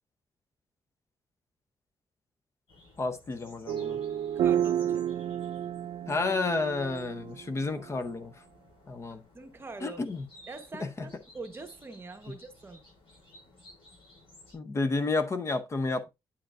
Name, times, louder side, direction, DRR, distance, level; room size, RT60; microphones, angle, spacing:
sound 1, 2.7-14.5, left 1 dB, 75° left, 5.3 m, -57 dB
voice 1, 3.0-4.0 6.1-8.3 8.9-9.2 9.8-10.2 10.8-11.1 14.5-16.1, left 3 dB, 30° left, 0.6 m, -31 dB
sound 2, 3.7-8.1, right 10 dB, 85° right, 0.4 m, -31 dB
voice 2, 4.3-5.1 9.1-10.0 10.5-12.8, right 3 dB, 25° right, 1.0 m, -44 dB
8.3 x 7.7 x 2.4 m
wide cardioid pair, 155°, 9 cm